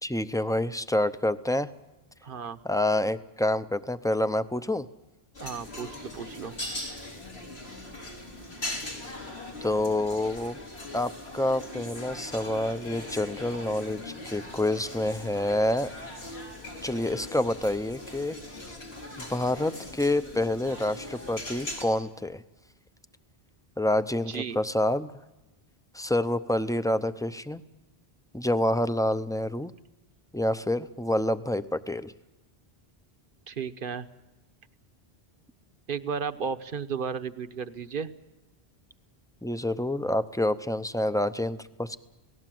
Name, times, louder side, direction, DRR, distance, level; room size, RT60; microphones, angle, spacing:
voice 1, 0.0-1.7 2.6-4.9 9.6-10.6 10.9-15.9 16.8-18.4 19.2-22.4 23.8-25.1 25.9-27.6 28.3-29.7 30.3-32.1 39.4-42.0, left 1 dB, 5° left, 11 dB, 0.5 m, -27 dB
voice 2, 2.2-2.6 5.4-6.5 24.3-24.6 33.5-34.1 35.9-38.1, right 6 dB, 60° right, 10 dB, 1.2 m, -34 dB
sound 1, 5.3-21.8, left 2 dB, 90° left, 4.4 m, -40 dB
28.0 x 18.5 x 7.7 m, 1.1 s
omnidirectional pair, 1.0 m